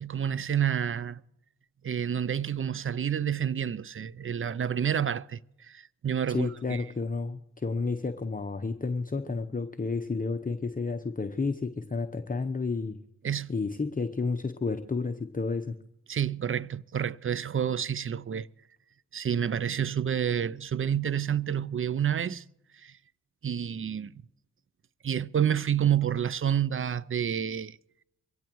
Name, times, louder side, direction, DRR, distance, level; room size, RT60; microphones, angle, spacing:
voice 1, 0.0-1.2 1.8-6.8 13.2-13.5 16.1-18.5 19.1-22.4 22.7-23.0 23.4-24.1 25.0-27.8, right 8 dB, 30° right, 0.5 m, -29 dB
voice 2, 6.3-13.0 13.5-15.8, left 4 dB, 20° left, 0.9 m, -31 dB
23.5 x 16.5 x 3.1 m
supercardioid pair, 45°, 40 cm